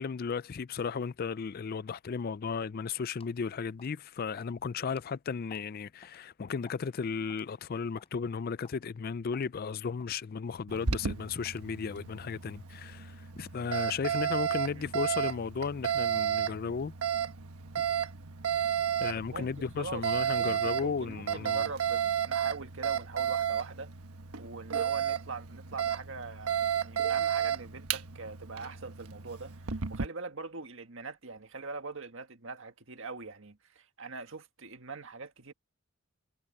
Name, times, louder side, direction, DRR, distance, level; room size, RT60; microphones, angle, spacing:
voice 1, 0.0-16.9 19.0-21.7, left 5 dB, 40° left, 0.4 m, -35 dB
sound 1, 3.2-3.4 3.8-4.0 4.4-4.6 4.9-5.0 5.5-5.7 6.0-6.2 6.7-6.9 7.3-7.5 8.0-8.1 8.6-8.8 9.3-9.5 10.0-10.2 10.7-10.9 11.4-11.7, left 3 dB, 25° left, 5.7 m, -55 dB
Alarm, 10.7-30.1, right 9 dB, 85° right, 1.2 m, -33 dB
voice 2, 19.3-20.1 20.3-23.9 24.4-35.5, right 3 dB, 60° right, 1.8 m, -42 dB
head